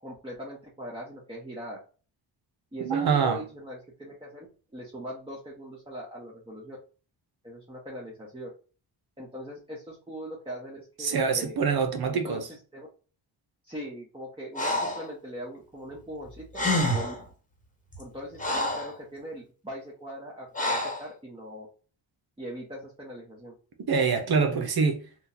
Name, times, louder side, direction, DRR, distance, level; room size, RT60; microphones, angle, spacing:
voice 1, 0.0-1.8 2.7-4.5 4.7-6.8 7.4-8.5 9.2-11.5 12.1-12.4 12.7-12.9 13.7-16.4 16.8-17.1 18.0-21.7 22.4-23.5, equal, 10° right, 1.3 m, -41 dB
voice 2, 2.8-3.4 11.0-12.5 23.9-25.0, right 5 dB, 50° right, 0.9 m, -25 dB
Breathing, 14.5-15.1 16.2-16.3 16.5-17.2 17.9-18.9 20.5-21.1, left 1 dB, 15° left, 1.4 m, -28 dB
3.7 x 2.4 x 2.8 m
cardioid pair, 65°, 49 cm